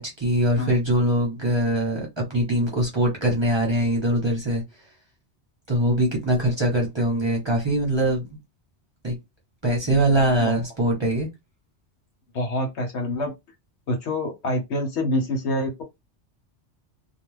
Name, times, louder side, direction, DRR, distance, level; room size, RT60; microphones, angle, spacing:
voice 1, 0.0-4.6 5.7-8.2 9.0-9.1 9.6-11.3, right 1 dB, 25° right, 0.8 m, -22 dB
voice 2, 12.3-13.3 13.9-15.8, left 1 dB, 75° left, 1.1 m, -26 dB
2.4 x 2.3 x 3.2 m
omnidirectional pair, 1.2 m